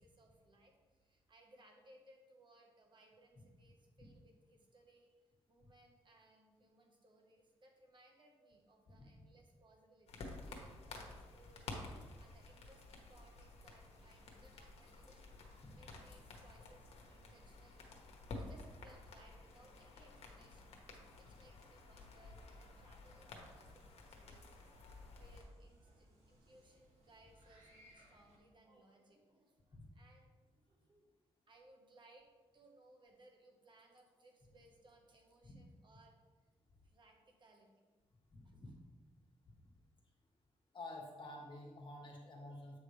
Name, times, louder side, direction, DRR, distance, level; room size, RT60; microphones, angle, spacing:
voice 1, 0.0-5.1 5.5-15.3 15.7-18.0 18.3-20.8 21.2-24.6 25.2-31.1 31.5-32.3 32.5-36.1 36.8-37.8 38.4-38.7, right 1 dB, 45° right, 1 dB, 1.3 m, -66 dB
sound 1, 10.1-25.4, left 2 dB, 70° left, 1.2 m, -52 dB
sound 2, 12.7-28.4, equal, 75° right, 2.4 m, -68 dB
voice 2, 38.3-38.7 40.7-42.8, left 1 dB, 45° left, 0 dB, 1.7 m, -50 dB
8.3 x 5.7 x 3.3 m, 1.3 s
cardioid pair, 95°, 11 cm